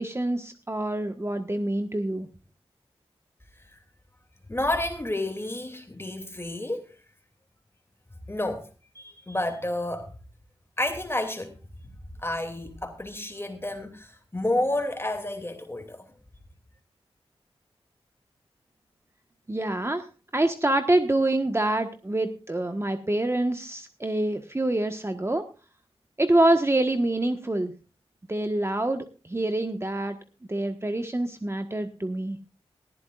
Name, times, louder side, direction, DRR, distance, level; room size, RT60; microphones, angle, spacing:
voice 1, 0.0-2.3 19.5-20.1 20.3-25.4 26.2-27.7 28.3-30.2 30.5-32.4, right 1 dB, 25° right, 6 dB, 1.3 m, -26 dB
voice 2, 4.5-6.9 8.3-8.7 8.9-10.1 10.8-11.6 12.2-16.0, left 1 dB, 25° left, 6 dB, 2.6 m, -30 dB
19.0 x 14.5 x 2.5 m, 0.31 s
cardioid pair, 50°, 11 cm